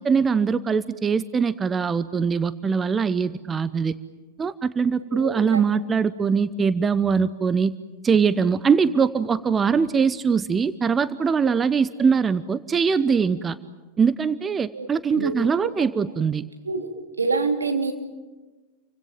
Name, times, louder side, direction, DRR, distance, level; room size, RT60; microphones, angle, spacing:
voice 1, 0.0-3.9 4.4-7.7 8.0-13.6 14.0-16.4, right 6 dB, 20° right, 15 dB, 0.8 m, -22 dB
voice 2, 5.1-5.6 14.7-14.9 15.1-15.3 16.6-16.9 17.2-17.9, right 4 dB, 75° right, 5 dB, 2.9 m, -26 dB
29.0 x 24.5 x 7.5 m, 1.2 s
figure-of-eight pair, 90°, 0 cm